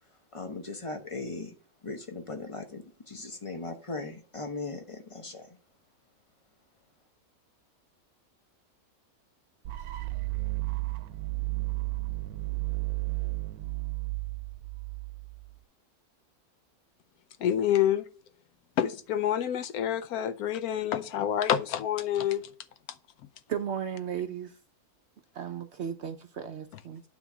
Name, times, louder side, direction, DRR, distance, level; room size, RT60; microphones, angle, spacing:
voice 1, 0.3-1.5 1.8-5.5, left 3 dB, 25° left, 0.8 m, -38 dB
sound 1, 9.6-15.6, right 22 dB, 80° right, 1.1 m, -33 dB
voice 2, 17.4-18.0 18.8-22.5, left 10 dB, 80° left, 1.1 m, -27 dB
voice 3, 23.5-24.5 25.3-27.0, right 8 dB, 65° right, 0.7 m, -35 dB
9.3 x 3.5 x 6.0 m
omnidirectional pair, 1.6 m